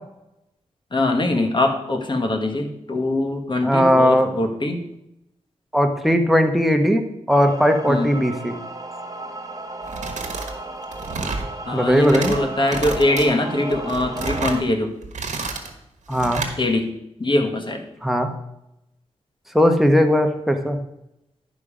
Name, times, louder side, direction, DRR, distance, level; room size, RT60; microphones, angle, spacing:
voice 1, 0.9-4.8 7.9-8.1 11.6-14.9 16.6-16.9 17.2-17.8, left 2 dB, 40° left, 4 dB, 1.4 m, -22 dB
voice 2, 3.6-4.3 5.7-7.0 7.3-8.5 11.7-12.3 16.1-16.4 18.0-18.3 19.5-20.8, equal, ahead, 5 dB, 1.1 m, -18 dB
sound 1, 7.3-14.6, right 2 dB, 30° right, 0.9 m, -34 dB
sound 2, 9.8-10.5 10.8-11.5 11.9-12.4 12.7-13.3 13.7-14.6 15.0-15.7 16.1-16.5, right 4 dB, 80° right, 1.3 m, -30 dB
11.0 x 5.4 x 5.0 m, 0.84 s
cardioid pair, 75°, 12 cm